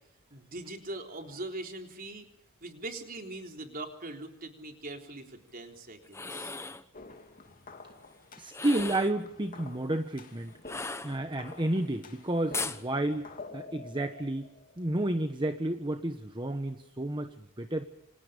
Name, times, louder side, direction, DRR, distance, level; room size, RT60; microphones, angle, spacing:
voice 1, 0.3-2.3 2.6-6.5, right 2 dB, 40° right, 3 dB, 3.8 m, -41 dB
sound 1, 6.0-6.9 8.5-9.2 10.6-11.5 12.5-12.8, left 3 dB, 10° left, 1.0 m, -37 dB
sound 2, 6.9-15.1, left 3 dB, 40° left, 2.8 m, -49 dB
voice 2, 8.4-10.5 11.0-13.3 13.5-14.5 14.8-17.9, right 1 dB, 20° right, 7 dB, 1.2 m, -31 dB
28.5 x 27.0 x 5.3 m, 0.71 s
head